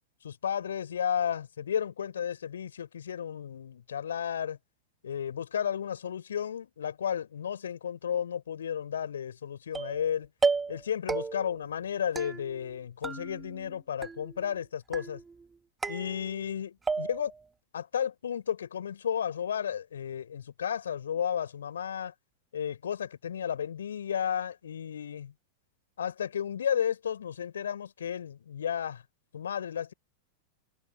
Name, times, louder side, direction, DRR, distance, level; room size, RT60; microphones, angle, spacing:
voice 1, 0.2-4.6 5.0-10.3 10.7-15.2 15.9-17.3 17.7-22.1 22.5-25.3 26.0-29.0 29.3-29.9, left 8 dB, 65° left, 5.3 m, -33 dB
sound 1, 9.7-10.1 10.4-10.8 11.1-11.6 12.2-12.8 13.0-13.7 14.0-14.5 14.9-15.4 15.8-16.5 16.9-17.4, right 4 dB, 15° right, 1.7 m, -33 dB
figure-of-eight pair, 90°, 0 cm